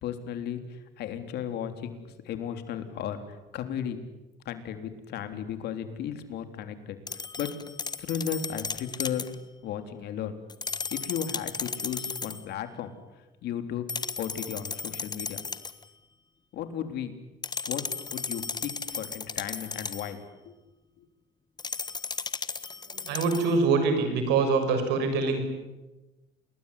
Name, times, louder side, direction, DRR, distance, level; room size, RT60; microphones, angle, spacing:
voice 1, 0.0-4.0 4.5-7.5 8.0-9.3 9.6-10.4 10.9-12.9 13.4-13.9 14.2-15.4 16.5-17.1 17.7-17.8 18.1-20.6 21.0-21.1, left 9 dB, 75° left, 8 dB, 3.6 m, -35 dB
sound 1, 7.1-9.4 10.5-12.4 13.9-15.8 17.4-20.2 21.6-23.6, left 5 dB, 25° left, 1.4 m, -35 dB
voice 2, 22.9-25.4, right 4 dB, 85° right, 8 dB, 6.8 m, -24 dB
29.0 x 21.0 x 9.8 m, 1.1 s
cardioid pair, 110°, 17 cm